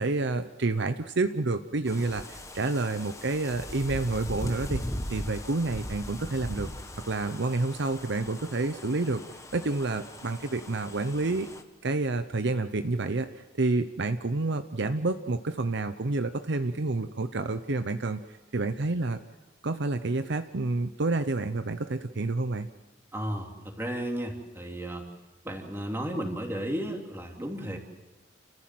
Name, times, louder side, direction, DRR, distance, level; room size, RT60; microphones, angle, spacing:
voice 1, 0.0-4.8 5.1-6.7 7.1-9.2 9.5-11.5 11.8-18.2 18.5-19.2 19.6-22.7, right 3 dB, 60° right, 9 dB, 0.8 m, -29 dB
sound 1, 1.9-11.6, left 1 dB, 15° left, 1.3 m, -39 dB
voice 2, 23.1-25.0 25.4-27.8, right 1 dB, 10° right, 1 dB, 3.1 m, -33 dB
30.0 x 15.0 x 7.7 m, 1.1 s
head